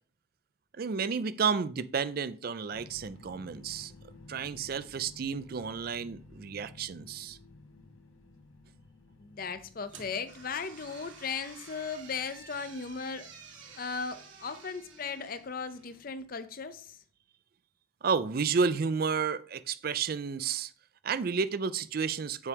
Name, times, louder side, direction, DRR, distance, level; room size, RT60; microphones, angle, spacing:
voice 1, 0.8-3.9 4.3-7.4 18.0-20.7 21.0-22.5, right 5 dB, 45° right, 0.4 m, -31 dB
sound 1, 2.7-16.7, left 2 dB, 75° left, 0.9 m, -56 dB
voice 2, 9.2-13.3 13.7-17.0, left 5 dB, 45° left, 0.6 m, -37 dB
sound 2, 9.9-16.0, right 5 dB, 70° right, 1.5 m, -52 dB
8.3 x 4.7 x 3.5 m
head